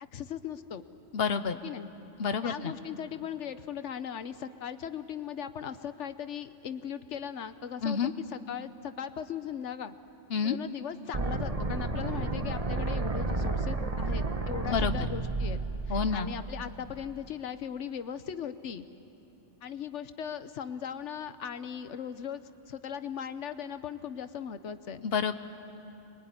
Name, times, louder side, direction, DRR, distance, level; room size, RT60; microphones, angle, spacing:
voice 1, 0.1-0.8 1.5-1.9 2.4-9.9 10.4-15.6 15.9-18.9 19.6-25.0, left 8 dB, 75° left, 11 dB, 1.2 m, -38 dB
voice 2, 1.1-1.6 2.2-2.7 7.8-8.1 10.3-10.6 14.7-14.9 15.9-16.3 25.0-25.3, left 6 dB, 55° left, 10 dB, 1.1 m, -28 dB
sound 1, 11.1-17.1, right 3 dB, 30° right, 1.3 m, -32 dB
25.5 x 22.0 x 9.7 m, 2.8 s
omnidirectional pair, 1.2 m